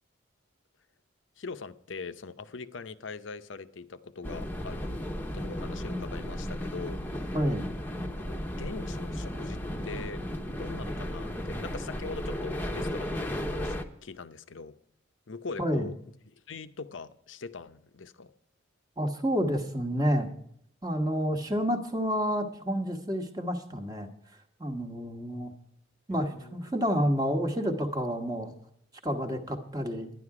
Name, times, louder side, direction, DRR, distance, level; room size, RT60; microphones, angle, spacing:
voice 1, 1.4-5.0 5.3-7.4 8.2-10.2 10.6-13.8 14.0-14.8 15.3-15.9 16.3-18.3 26.1-26.6, left 4 dB, 75° left, 12 dB, 0.7 m, -42 dB
sound 1, 4.2-13.8, left 1 dB, 10° left, 0.9 m, -34 dB
voice 2, 15.6-15.9 19.0-20.3 20.8-24.1 24.6-25.5 26.1-28.6 29.0-30.1, equal, 20° right, 5 dB, 1.2 m, -29 dB
11.5 x 10.5 x 4.8 m, 0.70 s
head